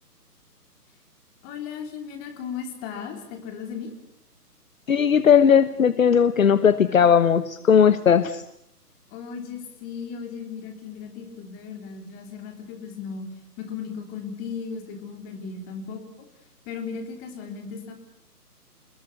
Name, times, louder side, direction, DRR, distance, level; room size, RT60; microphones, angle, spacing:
voice 1, 1.4-3.9 9.1-13.2 13.6-16.3 16.6-17.9, left 6 dB, 20° left, 5 dB, 3.3 m, -36 dB
voice 2, 4.9-8.4, left 7 dB, 55° left, 14 dB, 1.2 m, -18 dB
27.0 x 21.5 x 8.2 m, 0.70 s
figure-of-eight pair, 145°, 48 cm